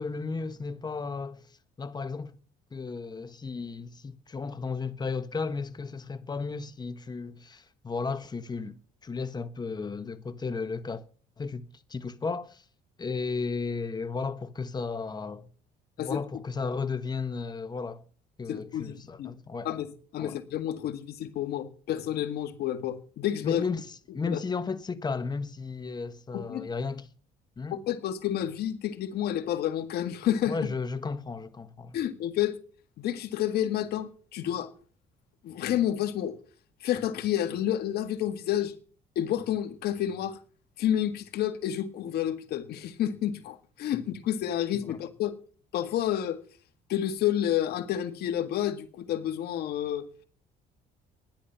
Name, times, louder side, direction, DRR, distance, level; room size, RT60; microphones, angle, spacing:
voice 1, 0.0-1.5 1.8-2.3 2.7-8.8 9.0-11.0 11.4-12.6 13.0-15.5 16.0-18.0 18.4-19.7 20.2-20.4 23.4-23.8 24.1-27.1 27.6-27.8 30.5-32.0 43.9-44.0 44.9-45.0, left 4 dB, 25° left, 1.2 m, -34 dB
voice 2, 18.5-19.3 19.6-23.6 24.3-24.4 26.3-26.7 27.7-30.6 31.9-32.6 33.0-34.7 35.4-36.4 36.8-38.7 39.2-40.4 40.8-45.4 45.7-46.4 46.9-50.1, left 11 dB, 70° left, 1.9 m, -30 dB
13.5 x 10.5 x 5.8 m
cardioid pair, 110°, 17 cm